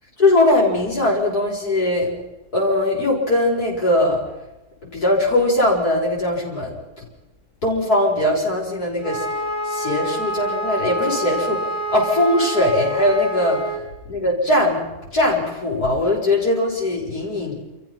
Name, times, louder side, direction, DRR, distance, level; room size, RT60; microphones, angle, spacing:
voice 1, 0.2-2.1 2.5-4.2 4.8-7.0 7.6-9.2 9.7-13.6 14.1-14.8 15.1-17.6, left 1 dB, 90° left, -3 dB, 7.2 m, -20 dB
Wind instrument woodwind instrument, 9.0-13.8, right 1 dB, 55° left, 5.3 m, -27 dB
29.0 x 15.0 x 5.9 m, 0.98 s
omnidirectional pair, 1.6 m